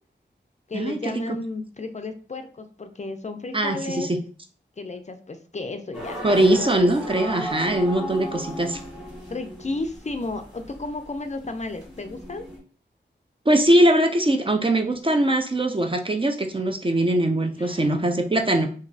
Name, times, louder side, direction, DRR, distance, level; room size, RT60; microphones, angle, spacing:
voice 1, 0.7-4.1 4.8-6.6 9.3-12.4 17.6-18.0, left 3 dB, 40° left, 7 dB, 0.4 m, -33 dB
voice 2, 3.5-4.1 6.2-8.8 13.5-18.7, right 1 dB, 30° right, 4 dB, 0.4 m, -21 dB
sound 1, 5.9-12.6, equal, ahead, 1.5 m, -36 dB
2.9 x 2.6 x 2.6 m, 0.43 s
wide cardioid pair, 55°, 19 cm